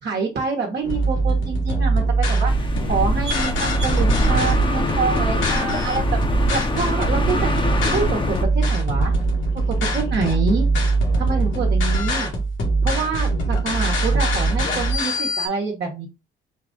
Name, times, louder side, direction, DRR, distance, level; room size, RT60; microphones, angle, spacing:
voice 1, 0.0-3.6 3.8-6.2 6.5-7.5 7.9-9.1 9.7-10.7 11.2-12.3 12.8-16.1, right 4 dB, 60° right, 1 dB, 1.1 m, -26 dB
sound 1, 0.8-15.5, right 2 dB, 75° left, 1.8 m, -22 dB
sound 2, 2.4-8.4, left 2 dB, 25° left, 0.8 m, -24 dB
4.6 x 2.4 x 3.8 m, 0.27 s
cardioid pair, 90°, 20 cm